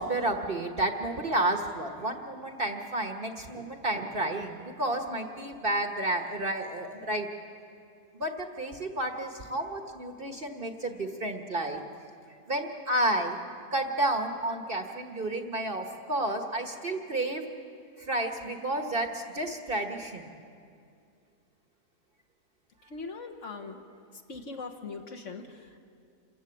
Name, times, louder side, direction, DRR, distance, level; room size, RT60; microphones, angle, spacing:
voice 1, 0.0-7.3 8.1-11.8 12.5-13.4 13.7-17.4 18.0-20.3, right 1 dB, 35° right, 5 dB, 1.2 m, -31 dB
voice 2, 22.9-23.8 24.3-25.8, left 4 dB, 50° left, 4 dB, 1.5 m, -40 dB
27.5 x 14.5 x 8.4 m, 2.4 s
omnidirectional pair, 1.7 m